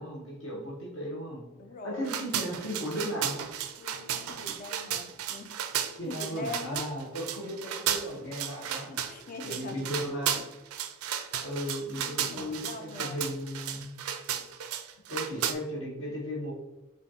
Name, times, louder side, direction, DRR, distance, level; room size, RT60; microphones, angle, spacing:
voice 1, 0.0-1.4 1.8-3.4 5.9-8.9 9.4-10.4 11.4-13.9 15.1-16.5, equal, 60° left, -4 dB, 0.9 m, -36 dB
voice 2, 1.6-2.1 3.8-6.9 8.7-10.0 12.0-13.3, left 2 dB, 40° left, 6 dB, 0.3 m, -43 dB
sound 1, 2.0-15.5, right 9 dB, 75° right, 0.4 m, -34 dB
4.9 x 2.4 x 2.7 m, 1.1 s
head